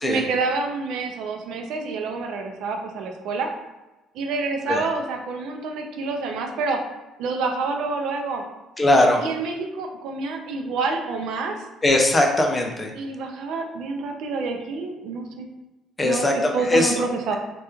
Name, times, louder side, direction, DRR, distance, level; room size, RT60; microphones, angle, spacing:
voice 1, 0.0-3.5 4.1-6.8 7.2-8.4 9.2-11.7 12.9-15.5 16.0-16.3 16.5-17.4, right 4 dB, 75° right, 3 dB, 0.4 m, -28 dB
voice 2, 8.8-9.2 11.8-12.9 16.0-17.0, left 1 dB, 20° left, 1 dB, 0.5 m, -20 dB
2.9 x 2.3 x 2.3 m, 1.0 s
cardioid pair, 105°, 0 cm